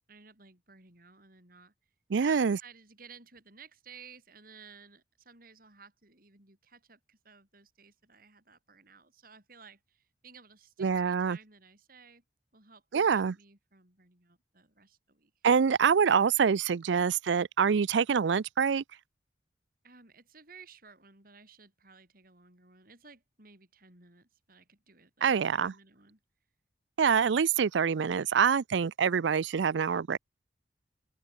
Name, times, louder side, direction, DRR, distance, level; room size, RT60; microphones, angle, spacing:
voice 1, 0.1-1.9 2.2-12.2 12.5-15.5 19.8-26.2, right 5 dB, 50° right, 5.6 m, -56 dB
voice 2, 2.1-2.6 10.8-11.4 12.9-13.3 15.4-18.8 25.2-25.7 27.0-30.2, right 6 dB, 80° right, 0.4 m, -25 dB
open air
head